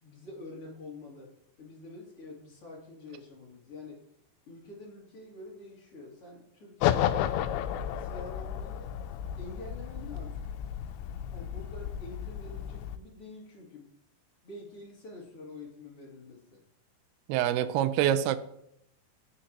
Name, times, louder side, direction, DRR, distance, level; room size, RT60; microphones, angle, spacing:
voice 1, 0.0-4.0 4.5-7.2 8.0-8.9 9.4-10.5 11.3-13.9 14.4-16.6, left 2 dB, 40° left, 2.6 m, -47 dB
sound 1, 6.8-13.0, left 10 dB, 85° left, 2.8 m, -32 dB
voice 2, 17.3-18.4, right 11 dB, 80° right, 2.3 m, -25 dB
17.0 x 6.5 x 2.9 m
omnidirectional pair, 5.1 m